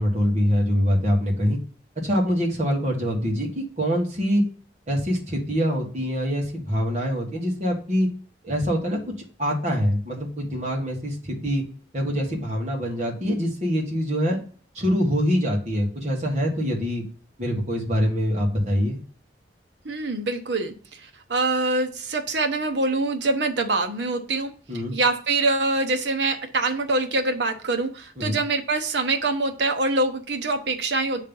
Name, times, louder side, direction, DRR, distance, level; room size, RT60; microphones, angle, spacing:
voice 1, 0.0-1.6 2.0-4.4 4.9-8.1 8.4-9.0 9.4-11.6 11.9-14.4 14.7-17.0 17.4-19.0 24.7-25.0 28.2-28.4, equal, 35° right, -2 dB, 1.7 m, -24 dB
voice 2, 19.8-24.5 24.9-31.2, right 2 dB, 70° right, 5 dB, 0.9 m, -24 dB
7.5 x 3.3 x 5.4 m, 0.41 s
head